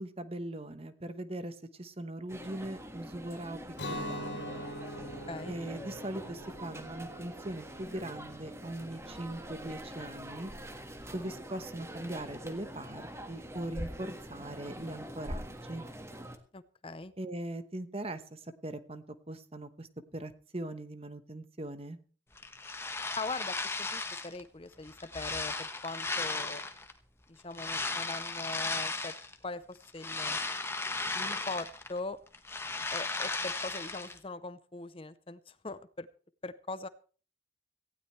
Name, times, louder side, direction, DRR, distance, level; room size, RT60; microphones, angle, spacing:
voice 1, 0.0-3.6 3.9-4.5 5.5-10.5 11.1-15.9 17.2-22.0, right 1 dB, 30° right, 11 dB, 1.1 m, -40 dB
sound 1, 2.3-16.4, equal, 15° right, 1.6 m, -44 dB
Guitar, 3.7-9.6, equal, 65° left, 2.9 m, -43 dB
voice 2, 5.3-5.6 16.5-17.1 23.2-26.6 27.3-29.1 29.4-30.4 31.1-32.2 32.9-36.1 36.4-36.9, left 3 dB, 30° left, 14 dB, 0.6 m, -41 dB
sound 2, 22.4-24.4 24.8-26.9 27.5-29.3 29.8-32.0 32.3-34.2, left 3 dB, 15° left, 1.3 m, -36 dB
18.0 x 16.0 x 3.2 m, 0.39 s
head